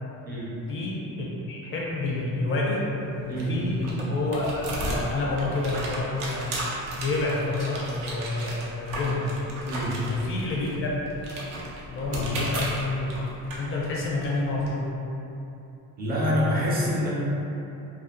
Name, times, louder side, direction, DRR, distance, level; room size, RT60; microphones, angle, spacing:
voice 1, 0.7-2.8 3.2-6.6 7.0-9.3 10.1-11.0 11.9-13.1 13.6-14.9, left 2 dB, 40° left, -4 dB, 0.4 m, -28 dB
sound 1, 3.0-14.7, right 1 dB, 75° right, 0.6 m, -35 dB
voice 2, 9.7-10.1 12.1-12.3 16.0-17.1, equal, 30° right, -6 dB, 0.5 m, -26 dB
2.6 x 2.2 x 2.5 m, 2.9 s
cardioid pair, 155°, 33 cm